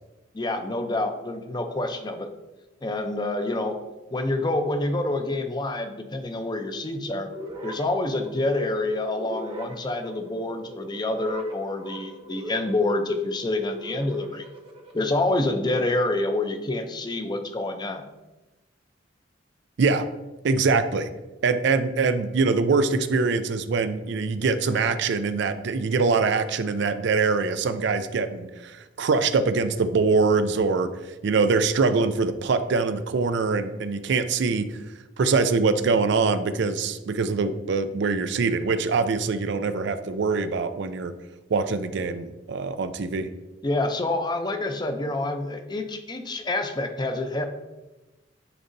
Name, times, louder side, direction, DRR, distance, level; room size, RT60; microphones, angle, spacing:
voice 1, 0.3-2.3 2.8-3.8 4.1-7.3 7.6-14.4 14.9-18.0 43.6-47.5, left 2 dB, 25° left, 7 dB, 0.6 m, -27 dB
sound 1, 7.3-15.2, right 1 dB, 30° right, 0.9 m, -41 dB
voice 2, 20.4-21.1 21.4-30.9 31.2-34.8 35.2-41.1 41.5-43.3, right 4 dB, 65° right, 10 dB, 0.4 m, -23 dB
10.0 x 4.0 x 2.6 m, 1.1 s
head